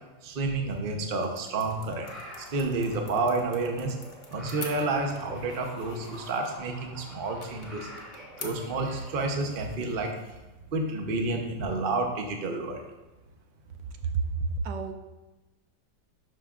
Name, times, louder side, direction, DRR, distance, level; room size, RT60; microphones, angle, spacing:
voice 1, 0.2-2.1 2.5-3.9 4.3-7.9 8.4-10.1 10.7-12.8, right 3 dB, 45° right, 3 dB, 0.7 m, -30 dB
sound 1, 0.5-12.1, left 4 dB, 50° left, 0.6 m, -50 dB
sound 2, 1.2-9.3, equal, ahead, 2.3 m, -47 dB
voice 2, 14.0-14.9, right 4 dB, 85° right, 6 dB, 1.3 m, -29 dB
11.5 x 5.0 x 2.4 m, 1.1 s
omnidirectional pair, 2.0 m